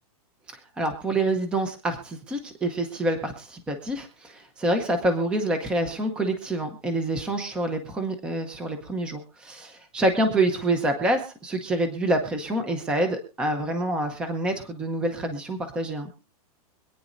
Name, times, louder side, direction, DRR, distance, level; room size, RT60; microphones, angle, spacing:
voice 1, 0.5-16.1, right 1 dB, 5° right, 6 dB, 0.7 m, -27 dB
25.0 x 9.3 x 2.6 m, 0.36 s
supercardioid pair, 180°, 19 cm